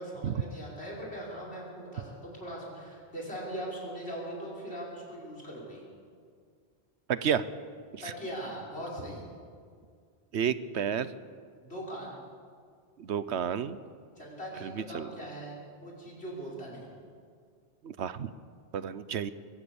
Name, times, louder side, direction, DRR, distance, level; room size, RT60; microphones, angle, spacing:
voice 1, 0.0-5.8 8.0-9.3 11.6-12.2 14.2-16.9, right 1 dB, 70° left, -3 dB, 5.8 m, -40 dB
voice 2, 7.1-7.5 7.9-8.1 10.3-11.1 13.0-13.8 14.6-15.1 17.8-18.3 18.7-19.3, right 8 dB, 90° right, 14 dB, 1.1 m, -31 dB
22.0 x 17.0 x 7.1 m, 2.1 s
omnidirectional pair, 1.1 m